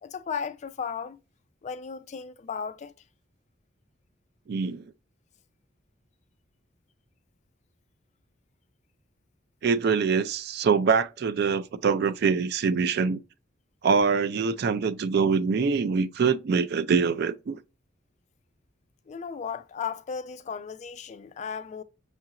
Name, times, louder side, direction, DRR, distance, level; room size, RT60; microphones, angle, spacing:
voice 1, 0.0-1.2 1.6-2.9 19.1-21.8, left 6 dB, 35° left, 0.3 m, -35 dB
voice 2, 4.5-4.8 9.6-13.2 13.8-17.6, right 5 dB, 55° right, 0.4 m, -24 dB
6.3 x 2.5 x 2.8 m
head